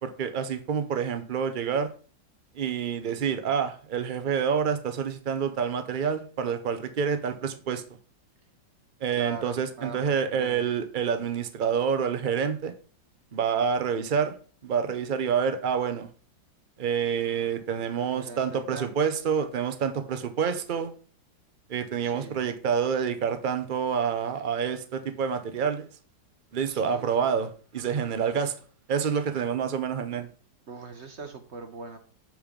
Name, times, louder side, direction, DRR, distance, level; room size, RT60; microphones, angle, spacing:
voice 1, 0.0-1.9 2.5-7.8 9.0-12.7 13.3-14.3 14.6-16.1 16.8-20.9 21.7-25.9 26.5-28.6 28.9-30.3, right 7 dB, 80° right, 10 dB, 0.4 m, -28 dB
voice 2, 9.2-10.6 18.0-19.0 22.0-22.4 26.7-27.1 30.7-32.0, right 4 dB, 50° right, 6 dB, 0.9 m, -41 dB
7.7 x 5.2 x 5.1 m, 0.41 s
omnidirectional pair, 2.0 m